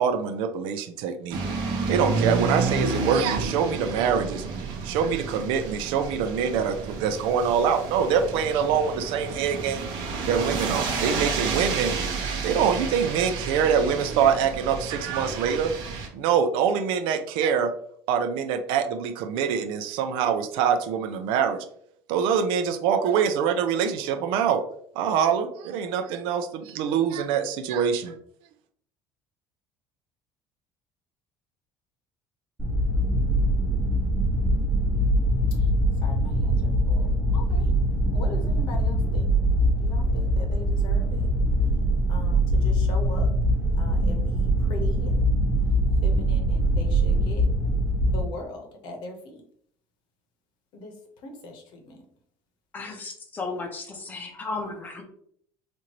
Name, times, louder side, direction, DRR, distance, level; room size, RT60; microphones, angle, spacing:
voice 1, 0.0-1.4 1.9-4.4 4.8-9.9 10.3-11.9 12.4-15.7 16.1-17.7 18.1-21.6 22.1-24.6 25.0-28.1, right 7 dB, 70° right, 8 dB, 0.5 m, -24 dB
sound 1, 1.3-16.1, right 4 dB, 55° right, 0.9 m, -30 dB
Low Rumble loop cut, 32.6-48.2, right 1 dB, 10° right, 1.0 m, -23 dB
voice 2, 36.0-37.7 38.1-39.3 39.8-41.3 42.1-43.3 43.8-45.3 46.0-47.5 48.0-49.4 50.7-52.0, left 2 dB, 60° left, 3 dB, 0.9 m, -40 dB
voice 3, 52.7-55.0, left 3 dB, 20° left, 3 dB, 0.7 m, -34 dB
4.4 x 2.6 x 2.9 m, 0.65 s
cardioid pair, 165°, 9 cm